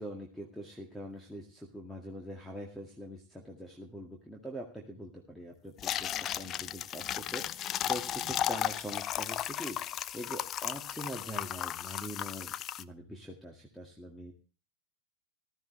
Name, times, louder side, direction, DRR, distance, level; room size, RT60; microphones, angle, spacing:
voice 1, 0.0-14.3, equal, 5° left, 2 dB, 2.0 m, -43 dB
sound 1, 5.8-12.8, left 11 dB, 30° left, 0.5 m, -35 dB
15.0 x 13.0 x 3.3 m, 0.37 s
figure-of-eight pair, 90°, 0 cm